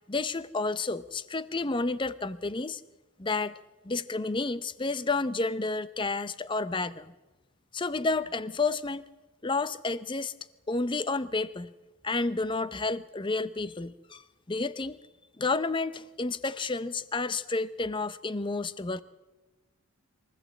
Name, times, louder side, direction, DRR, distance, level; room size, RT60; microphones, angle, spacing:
voice 1, 0.1-2.8 3.2-3.5 3.8-7.1 7.7-9.0 9.4-10.3 10.7-11.7 12.0-14.2 14.5-15.0 15.4-19.0, left 3 dB, 20° left, 15 dB, 0.5 m, -30 dB
23.5 x 14.5 x 8.3 m, 1.2 s
head